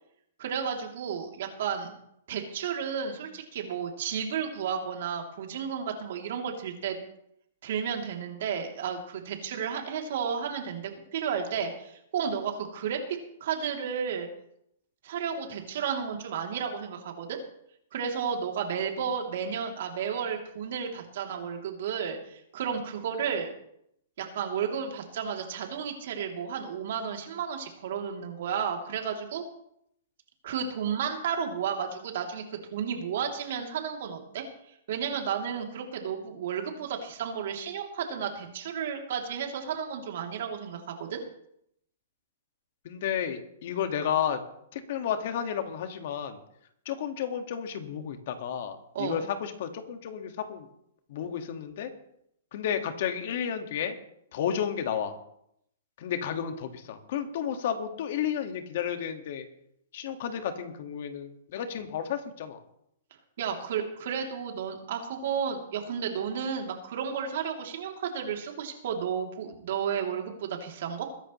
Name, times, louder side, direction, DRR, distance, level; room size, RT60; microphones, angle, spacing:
voice 1, 0.4-1.9 2.3-7.0 7.6-13.0 13.4-14.3 15.0-17.4 17.9-23.5 24.2-29.4 30.4-32.4 32.7-34.4 34.9-41.2 48.9-49.2 63.4-71.1, right 7 dB, 60° right, 2 dB, 3.0 m, -32 dB
voice 2, 42.8-44.4 44.7-46.4 46.9-50.7 51.1-51.9 52.5-54.0 54.3-55.2 56.0-59.5 59.9-62.6, left 8 dB, 55° left, 7 dB, 1.8 m, -32 dB
22.0 x 11.0 x 3.2 m, 0.75 s
hypercardioid pair, 150°, 0 cm